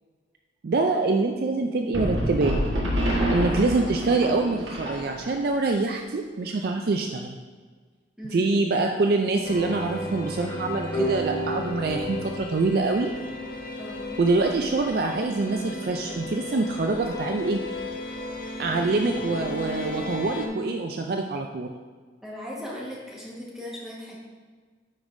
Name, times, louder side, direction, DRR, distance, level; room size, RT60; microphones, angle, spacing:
voice 1, 0.6-2.6 3.3-7.3 8.3-13.1 14.2-17.6 18.6-21.7, right 3 dB, 55° right, 3 dB, 0.4 m, -25 dB
sound 1, 1.9-5.5, equal, 85° right, 1.5 m, -27 dB
voice 2, 8.2-8.5 13.8-14.1 22.2-24.2, equal, ahead, -5 dB, 1.3 m, -38 dB
sound 2, 9.4-20.5, left 2 dB, 50° left, 0.7 m, -34 dB
sound 3, 10.9-13.7, left 1 dB, 70° left, 1.7 m, -34 dB
9.7 x 5.3 x 2.6 m, 1.5 s
head